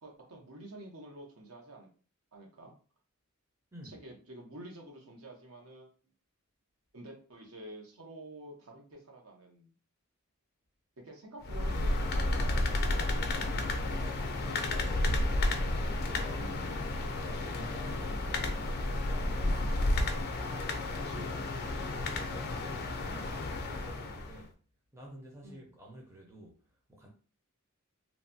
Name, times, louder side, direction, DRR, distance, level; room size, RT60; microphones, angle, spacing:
voice 1, 0.0-1.9 2.3-2.7 3.8-5.9 6.9-9.7 11.0-13.6 14.4-14.6 16.3-16.7 21.0-21.4 23.7-23.9 25.4-25.6, right 1 dB, 65° right, 0.9 m, -49 dB
sound 1, 11.4-24.4, left 2 dB, 45° left, 0.4 m, -32 dB
voice 2, 13.9-16.5 16.8-18.7 19.1-20.1 21.0-23.5 23.8-24.5 24.9-26.6 26.9-27.1, equal, 15° right, 0.5 m, -50 dB
3.0 x 2.2 x 2.6 m
head